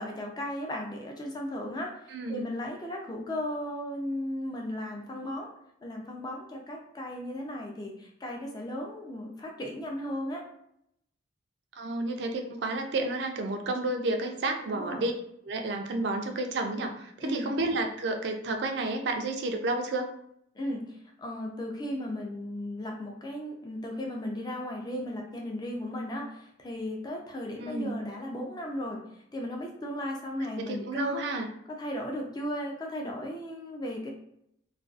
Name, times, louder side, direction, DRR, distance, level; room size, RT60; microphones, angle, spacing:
voice 1, 0.0-5.5 5.8-10.4 14.6-15.1 17.2-17.5 20.6-29.0 29.3-31.2 31.7-34.1, left 1 dB, 20° left, 0 dB, 0.4 m, -36 dB
voice 2, 2.1-2.5 11.8-15.1 15.5-20.1 27.6-28.0 30.4-31.5, right 2 dB, 60° right, 4 dB, 0.4 m, -31 dB
2.4 x 2.3 x 2.4 m, 0.74 s
head